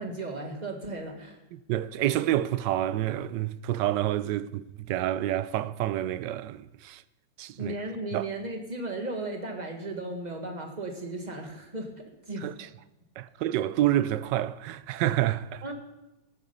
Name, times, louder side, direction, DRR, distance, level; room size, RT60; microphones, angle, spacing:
voice 1, 0.0-1.4 7.6-12.7 15.6-15.7, right 2 dB, 25° right, 1.8 m, -36 dB
voice 2, 1.5-7.0 7.4-7.7 8.1-8.3 12.4-12.5 13.2-15.6, right 13 dB, 75° right, 1.2 m, -28 dB
14.5 x 11.0 x 5.5 m
omnidirectional pair, 2.0 m